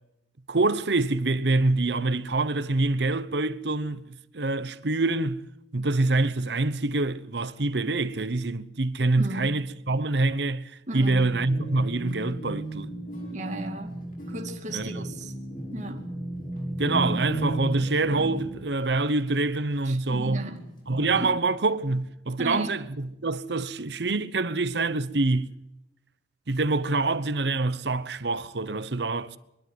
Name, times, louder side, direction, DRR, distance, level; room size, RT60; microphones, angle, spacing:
voice 1, 0.5-5.4 5.7-12.9 14.7-15.1 16.8-20.5 20.9-25.6 26.5-29.4, right 2 dB, 70° right, 1.0 m, -26 dB
voice 2, 9.2-9.6 10.9-11.3 13.3-14.0 14.3-15.3 15.7-16.1 19.8-20.7 21.2-21.4 22.4-22.9, right 1 dB, 45° right, 2.3 m, -35 dB
sound 1, 11.1-18.8 19.8-19.9 20.3-21.3, right 1 dB, 50° left, 5.2 m, -35 dB
23.0 x 12.0 x 9.4 m
head